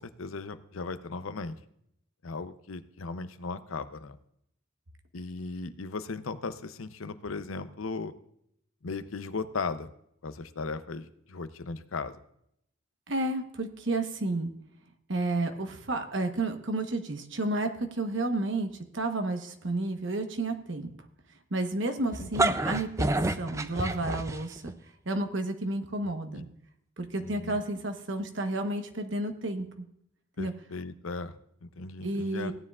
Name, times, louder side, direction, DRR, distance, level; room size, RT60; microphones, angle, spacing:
voice 1, 0.0-1.6 2.2-4.2 5.1-8.1 8.8-9.9 10.2-12.2 22.2-22.3 27.2-27.6 30.4-31.3 31.6-32.5, left 4 dB, 90° left, 12 dB, 0.7 m, -37 dB
voice 2, 13.1-14.5 15.1-20.9 21.5-23.1 23.4-24.7 25.0-26.5 27.0-29.8 30.4-30.5 32.0-32.5, right 2 dB, 65° right, 6 dB, 1.1 m, -31 dB
sound 1, 22.1-24.7, right 2 dB, 15° right, 0.4 m, -28 dB
16.5 x 9.6 x 2.4 m, 0.73 s
head